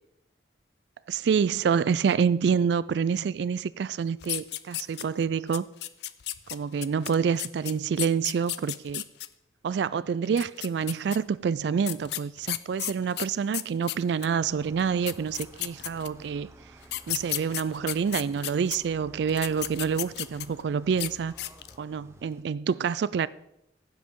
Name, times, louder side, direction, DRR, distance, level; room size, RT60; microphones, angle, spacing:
voice 1, 1.1-5.6 6.5-9.0 9.6-16.5 17.1-21.3 21.8-23.3, right 6 dB, 70° right, 0.3 m, -27 dB
sound 1, 4.2-5.2 5.5-9.3 10.3-11.2 11.8-14.3 14.8-14.9 15.1-16.3 16.8-18.8 19.3-20.6 20.9-21.1 21.4-21.8, left 15 dB, 65° left, 0.4 m, -33 dB
sound 2, 14.4-22.4, right 1 dB, 15° right, 0.9 m, -53 dB
15.0 x 7.7 x 3.7 m
head